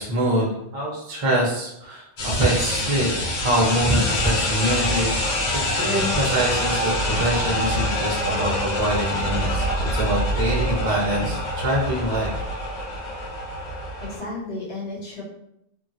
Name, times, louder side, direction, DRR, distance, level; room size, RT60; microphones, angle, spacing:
voice 1, 0.0-5.4 5.7-12.3, right 1 dB, 35° right, -3 dB, 0.7 m, -24 dB
sound 1, 2.2-14.2, left 1 dB, 70° left, 1.2 m, -25 dB
voice 2, 5.5-5.8 14.0-15.2, left 2 dB, 50° left, -8 dB, 1.3 m, -34 dB
2.7 x 2.5 x 2.6 m, 0.79 s
omnidirectional pair, 1.2 m